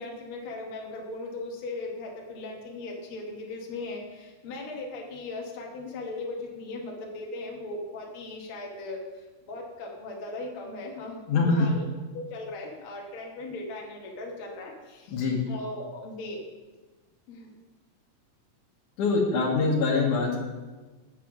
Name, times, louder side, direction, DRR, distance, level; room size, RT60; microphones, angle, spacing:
voice 1, 0.0-11.9 12.1-15.2 15.4-16.4 17.3-17.5, left 2 dB, 50° left, -1 dB, 1.8 m, -38 dB
voice 2, 11.3-11.7 15.1-15.4 19.0-20.5, left 3 dB, 70° left, 0 dB, 2.6 m, -24 dB
7.6 x 6.8 x 6.1 m, 1.3 s
omnidirectional pair, 3.8 m